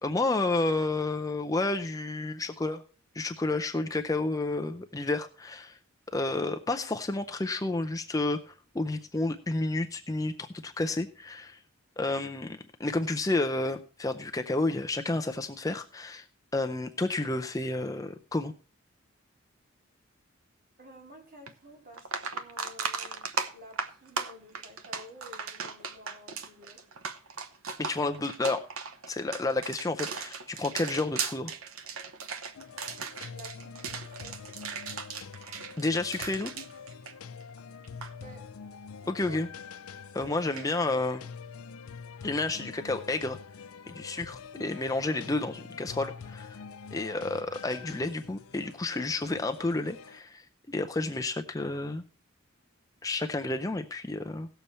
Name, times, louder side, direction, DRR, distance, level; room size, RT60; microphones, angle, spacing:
voice 1, 0.0-2.8 3.1-5.8 6.1-11.6 12.0-16.3 16.5-18.5 27.8-28.7 29.1-31.5 35.8-36.5 39.1-39.5 40.1-41.3 42.2-43.4 43.9-46.6 46.9-52.0 53.0-54.5, left 2 dB, 15° left, 7 dB, 0.5 m, -30 dB
voice 2, 20.8-26.8 33.1-34.5 38.2-38.4 39.0-39.4, equal, 40° right, 1 dB, 2.7 m, -51 dB
sound 1, 21.5-21.6 21.9-37.6 37.8-38.1 40.6-40.7, right 5 dB, 75° right, 0.9 m, -37 dB
sound 2, 32.6-50.2, left 5 dB, 90° left, 0.5 m, -46 dB
17.0 x 6.9 x 4.3 m, 0.38 s
head